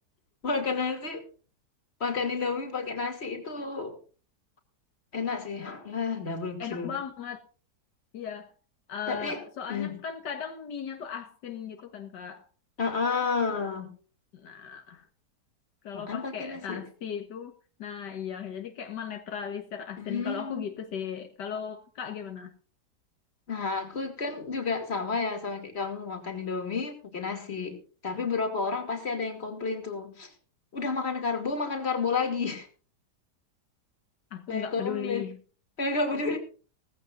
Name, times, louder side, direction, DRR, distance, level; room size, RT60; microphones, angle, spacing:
voice 1, 0.4-1.3 2.0-4.0 5.1-6.9 9.1-9.4 9.7-10.0 12.8-13.9 15.9-16.8 20.0-20.6 23.5-30.3 30.7-32.7 34.5-35.3 35.8-36.4, left 4 dB, 35° left, 5 dB, 2.8 m, -31 dB
voice 2, 6.6-7.4 8.1-8.5 8.9-12.5 14.3-15.1 15.8-17.5 17.8-22.5 34.3-35.4, left 8 dB, 80° left, 6 dB, 1.9 m, -37 dB
18.5 x 15.0 x 2.5 m, 0.37 s
omnidirectional pair, 1.8 m